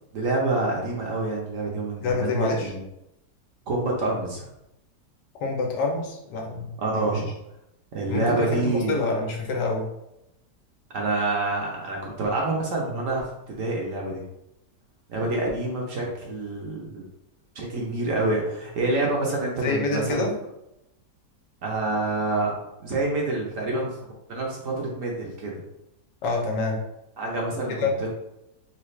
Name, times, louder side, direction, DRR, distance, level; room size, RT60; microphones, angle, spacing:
voice 1, 0.1-2.8 3.7-4.5 6.8-7.3 7.9-9.0 10.9-14.2 15.1-17.0 17.5-20.3 21.6-23.9 24.3-25.6 27.2-28.1, right 2 dB, 60° right, -2 dB, 1.0 m, -27 dB
voice 2, 2.0-2.7 5.4-7.2 8.1-9.9 19.6-20.3 26.2-26.8 27.7-27.9, left 3 dB, 90° left, 0 dB, 1.4 m, -27 dB
4.0 x 2.3 x 3.1 m, 0.85 s
omnidirectional pair, 1.8 m